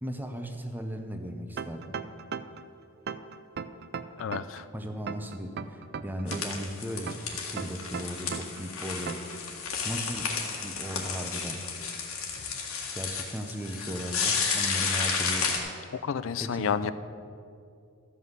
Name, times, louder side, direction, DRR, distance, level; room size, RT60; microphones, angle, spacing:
voice 1, 0.0-2.0 4.7-9.3 9.8-10.4 10.6-11.7 12.9-15.6 16.4-16.9, equal, 10° right, 6 dB, 0.7 m, -37 dB
sound 1, 1.6-2.6 3.1-4.6 5.1-6.6 7.1-8.6 9.1-9.4, right 6 dB, 50° right, 0.4 m, -37 dB
voice 2, 4.2-4.7 15.9-16.9, left 7 dB, 60° left, 13 dB, 0.4 m, -30 dB
sound 2, 6.3-15.6, left 5 dB, 90° left, 1.8 m, -32 dB
13.0 x 5.6 x 8.0 m, 2.5 s
head